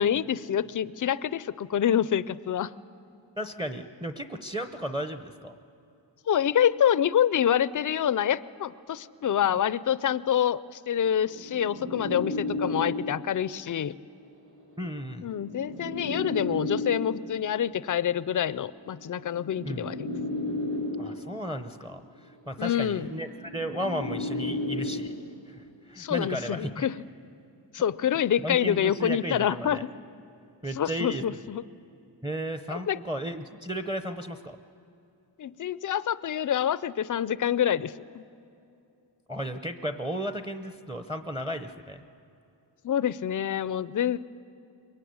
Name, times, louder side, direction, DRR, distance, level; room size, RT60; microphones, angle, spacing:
voice 1, 0.0-2.7 6.3-13.9 15.2-20.1 22.6-23.1 26.0-26.9 27.7-29.9 30.8-31.6 32.7-33.0 35.4-38.2 42.8-44.2, left 9 dB, 45° left, 17 dB, 0.5 m, -27 dB
voice 2, 3.4-5.6 14.8-15.3 19.7-19.9 21.0-25.1 25.5-26.9 28.4-29.8 30.6-31.3 32.2-34.6 39.3-42.0, equal, 10° right, 9 dB, 0.7 m, -34 dB
sound 1, 10.9-13.3 14.4-17.3 18.4-21.3 22.4-25.3, left 2 dB, 65° right, 7.7 m, -34 dB
23.0 x 22.5 x 9.5 m, 2.7 s
wide cardioid pair, 170°, 44 cm